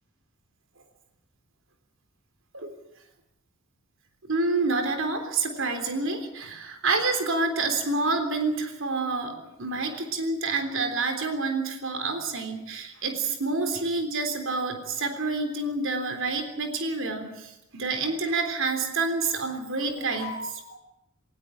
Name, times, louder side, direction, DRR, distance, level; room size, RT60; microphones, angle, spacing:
voice 1, 4.3-20.8, right 3 dB, 60° right, 6 dB, 3.6 m, -28 dB
20.0 x 19.0 x 8.7 m, 0.86 s
head